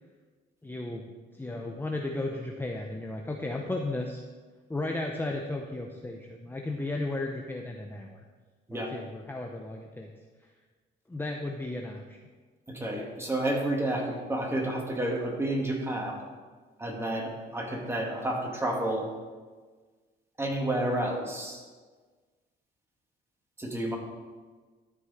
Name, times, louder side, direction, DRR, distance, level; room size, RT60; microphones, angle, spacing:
voice 1, 0.6-4.2 4.7-8.2 8.7-10.1 11.1-12.2, left 2 dB, 10° left, 2 dB, 0.7 m, -34 dB
voice 2, 12.7-16.2 16.8-19.1 20.4-21.6 23.6-24.0, right 1 dB, 10° right, 0 dB, 1.9 m, -30 dB
12.5 x 4.9 x 4.1 m, 1.4 s
cardioid pair, 90°, 20 cm